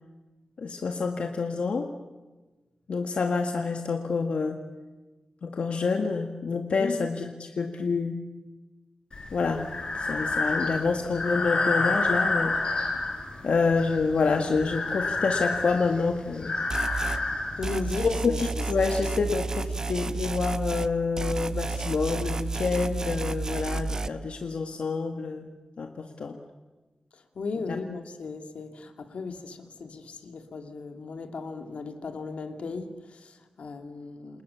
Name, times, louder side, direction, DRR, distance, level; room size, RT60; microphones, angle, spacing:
voice 1, 0.6-1.9 2.9-4.6 5.4-8.2 9.3-9.7 10.0-12.6 13.4-16.5 17.1-17.2 18.0-26.4 27.7-27.8, left 4 dB, 70° left, 4 dB, 1.9 m, -28 dB
Breathing, 9.1-18.1, left 3 dB, 50° left, 7.5 m, -29 dB
sound 1, 16.7-17.2 17.6-20.9 21.2-24.1, right 3 dB, 30° right, 0.9 m, -31 dB
voice 2, 17.6-18.7 19.2-19.3 19.7-19.9 27.1-34.4, left 4 dB, 85° left, 5 dB, 2.8 m, -36 dB
29.0 x 28.0 x 7.1 m, 1.2 s
wide cardioid pair, 140°, 2 cm